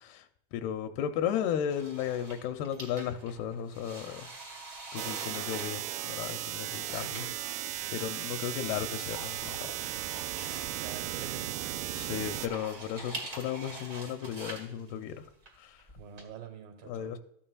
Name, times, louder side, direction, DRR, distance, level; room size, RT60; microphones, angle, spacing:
voice 1, 0.5-4.3 4.9-7.5 7.9-9.7 11.9-15.2 15.6-15.8 16.9-17.2, left 9 dB, 85° left, 2.5 m, -35 dB
sound 1, 1.7-16.2, right 2 dB, 50° right, 0.9 m, -46 dB
sound 2, 5.0-12.5, right 12 dB, 85° right, 1.9 m, -36 dB
voice 2, 7.1-8.1 10.7-11.8 16.0-17.1, right 7 dB, 70° right, 3.0 m, -47 dB
13.5 x 8.7 x 2.3 m
omnidirectional pair, 4.5 m